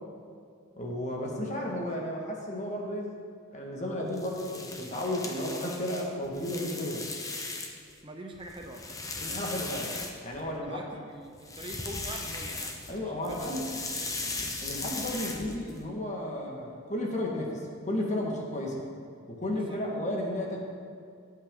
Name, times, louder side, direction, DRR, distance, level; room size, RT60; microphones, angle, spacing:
voice 1, 0.8-3.1 3.5-7.0 9.2-9.9 10.2-10.8 12.9-13.7 14.6-18.8 19.3-20.6, left 1 dB, 35° left, -1 dB, 1.8 m, -33 dB
sound 1, 4.1-7.9 8.3-10.6 11.3-13.0 13.2-15.8, left 3 dB, 15° left, 0.9 m, -38 dB
voice 2, 8.0-9.0 9.2-10.1 10.4-14.3 19.5-19.8, right 1 dB, 25° right, 2 dB, 0.8 m, -44 dB
17.5 x 8.5 x 3.9 m, 2.3 s
head